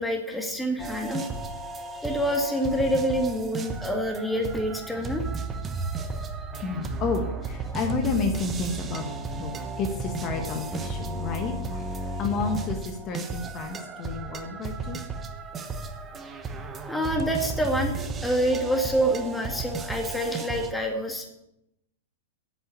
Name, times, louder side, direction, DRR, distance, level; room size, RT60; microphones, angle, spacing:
voice 1, 0.0-1.5 1.8-5.6 16.9-21.3, equal, 5° left, 2 dB, 2.1 m, -27 dB
sound 1, 0.8-20.7, right 3 dB, 25° right, 1.1 m, -34 dB
voice 2, 6.6-9.0 9.3-9.5 9.8-15.0, left 4 dB, 35° left, 4 dB, 1.5 m, -31 dB
8.2 x 7.9 x 8.1 m, 0.83 s
hypercardioid pair, 110°, 0 cm